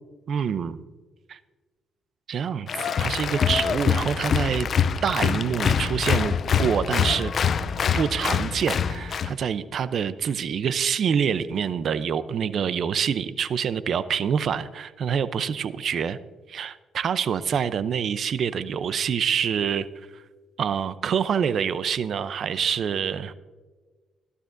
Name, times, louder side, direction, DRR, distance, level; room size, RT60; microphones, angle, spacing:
voice 1, 0.3-0.8 1.3-1.4 2.3-4.7 5.0-7.3 7.9-16.2 16.5-19.9 20.6-23.3, right 7 dB, 60° right, 14 dB, 0.6 m, -26 dB
Applause, 2.7-9.3, left 7 dB, 55° left, 0.5 m, -24 dB
15.0 x 12.5 x 2.6 m, 1.3 s
cardioid pair, 90°, 0 cm